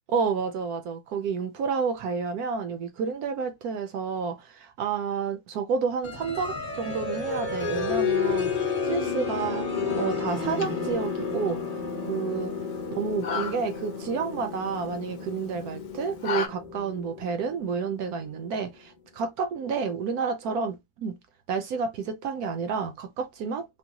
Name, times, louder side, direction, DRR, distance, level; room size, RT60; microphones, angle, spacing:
voice 1, 0.1-9.6 9.9-11.6 12.1-12.5 12.9-21.1 21.5-23.7, right 5 dB, 70° right, 0.9 m, -30 dB
sound 1, 6.0-18.5, left 5 dB, 30° left, 0.8 m, -31 dB
sound 2, 10.3-16.5, left 5 dB, 70° left, 1.0 m, -38 dB
3.7 x 2.1 x 2.8 m
omnidirectional pair, 2.0 m